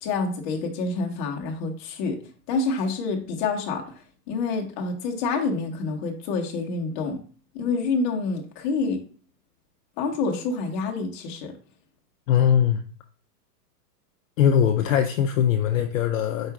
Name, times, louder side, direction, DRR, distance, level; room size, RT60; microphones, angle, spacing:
voice 1, 0.0-2.2 2.5-4.0 4.3-7.2 7.5-9.0 10.0-11.5, left 4 dB, 30° left, 0.8 m, -27 dB
voice 2, 12.3-12.8 14.4-16.5, left 9 dB, 55° left, 0.5 m, -21 dB
4.8 x 2.4 x 4.6 m
hypercardioid pair, 150°, 49 cm